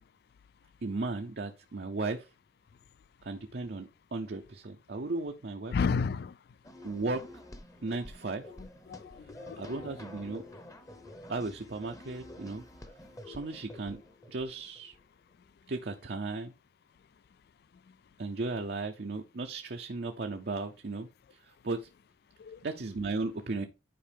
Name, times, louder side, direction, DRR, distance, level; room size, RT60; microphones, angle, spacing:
voice 1, 0.8-2.3 3.2-6.0 6.8-7.2 7.8-8.5 9.6-10.4 11.3-12.6 13.2-14.0 14.3-15.0 15.7-16.5 18.2-21.9 22.6-23.7, right 3 dB, 55° right, 0.6 m, -36 dB
voice 2, 5.7-6.3 8.6-9.8 22.4-22.6, left 5 dB, 55° left, 0.3 m, -32 dB
sound 1, 6.6-15.0, left 1 dB, 15° left, 0.9 m, -49 dB
10.0 x 4.6 x 3.4 m
head